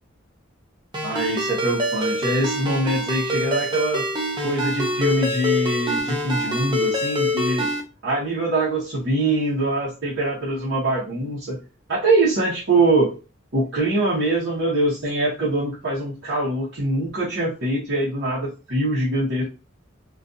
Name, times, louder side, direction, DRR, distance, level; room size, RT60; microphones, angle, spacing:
Ringtone, 0.9-7.8, equal, 20° right, 0.4 m, -25 dB
voice 1, 1.0-4.1 4.4-7.7 8.0-11.6 11.9-13.1 13.5-19.4, right 2 dB, 60° right, -9 dB, 0.9 m, -23 dB
2.5 x 2.3 x 2.6 m, 0.33 s
head